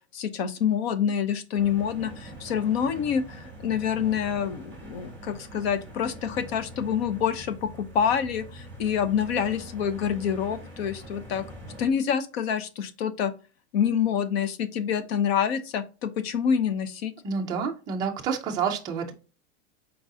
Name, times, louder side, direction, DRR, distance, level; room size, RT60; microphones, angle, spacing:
voice 1, 0.1-11.4 11.8-13.3 13.7-17.1, left 8 dB, 60° left, 0.8 m, -27 dB
sound 1, 1.6-11.9, right 1 dB, 5° left, 2.2 m, -43 dB
voice 2, 17.2-19.1, right 6 dB, 10° right, 0.3 m, -28 dB
4.6 x 3.7 x 2.7 m
supercardioid pair, 155°, 35 cm